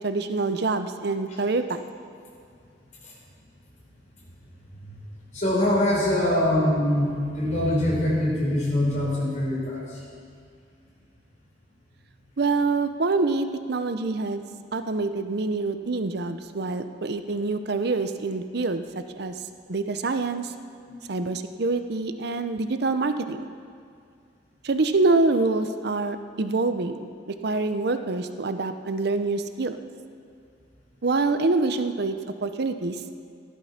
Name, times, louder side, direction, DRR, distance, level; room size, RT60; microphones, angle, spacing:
voice 1, 0.0-1.8 12.4-14.4 14.7-18.8 19.1-19.3 19.7-20.5 21.1-23.5 24.6-29.8 31.0-33.0, right 3 dB, 65° right, 9 dB, 0.7 m, -26 dB
voice 2, 5.3-10.0 20.9-21.0, left 1 dB, 45° left, -4 dB, 4.7 m, -24 dB
15.0 x 11.5 x 5.9 m, 2.3 s
head